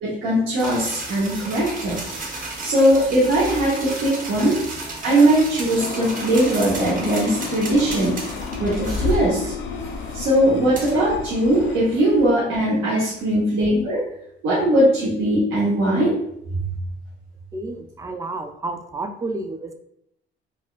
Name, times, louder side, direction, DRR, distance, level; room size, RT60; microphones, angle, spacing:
voice 1, 0.0-2.0 2.6-4.6 5.0-8.2 8.5-9.5 10.1-14.0 14.4-16.1 16.5-16.7, right 1 dB, 85° right, -8 dB, 0.9 m, -20 dB
sound 1, 0.6-12.3, right 2 dB, 45° right, 0.9 m, -34 dB
sound 2, 5.8-11.8, left 5 dB, 80° left, 0.4 m, -31 dB
voice 2, 17.5-19.7, right 2 dB, 15° right, 6 dB, 0.4 m, -31 dB
4.1 x 2.3 x 2.3 m, 0.77 s
cardioid pair, 90°, 20 cm